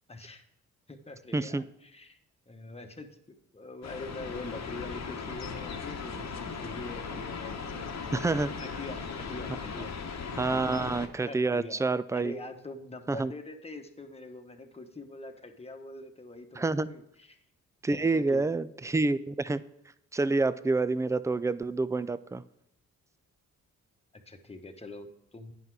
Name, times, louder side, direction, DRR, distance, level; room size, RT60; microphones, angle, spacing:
voice 1, 0.1-0.4 0.9-2.2 2.5-8.2 8.6-9.9 10.3-10.7 11.2-11.8 12.1-17.4 17.9-18.4 18.9-19.0 24.3-25.5, left 2 dB, 15° left, 5 dB, 1.1 m, -44 dB
voice 2, 1.3-1.6 8.1-8.5 10.4-12.3 13.1-13.3 16.6-16.9 17.8-19.6 20.1-22.4, right 3 dB, 10° right, 16 dB, 0.3 m, -28 dB
sound 1, 3.8-11.1, left 5 dB, 50° left, 1.0 m, -38 dB
9.2 x 5.6 x 4.7 m, 0.78 s
supercardioid pair, 55°, 35 cm